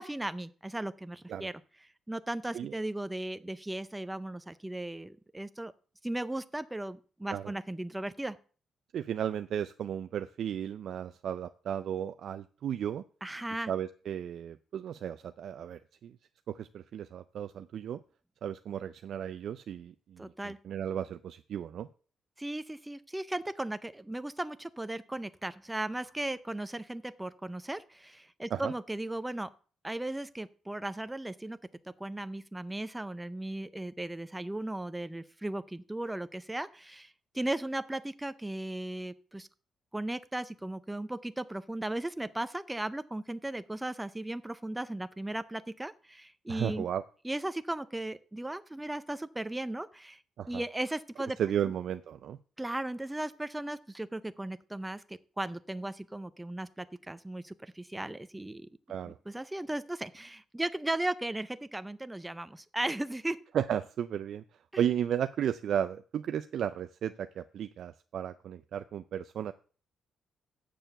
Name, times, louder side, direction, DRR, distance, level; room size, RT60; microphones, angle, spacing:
voice 1, 0.0-1.5 2.1-5.7 6.0-8.4 13.2-13.7 20.2-20.6 22.4-29.5 29.8-31.6 32.0-39.5 39.9-46.9 47.2-50.2 50.5-51.4 52.6-58.7 59.3-63.4 64.7-64.8, right 1 dB, 10° right, 13 dB, 0.5 m, -36 dB
voice 2, 8.9-13.0 13.7-16.2 16.5-18.0 18.4-21.9 28.5-28.7 46.5-47.0 50.4-50.6 51.4-52.4 58.9-59.2 63.5-64.4 64.8-69.5, right 9 dB, 60° right, 10 dB, 0.4 m, -34 dB
7.6 x 6.9 x 6.7 m, 0.39 s
cardioid pair, 145°, 0 cm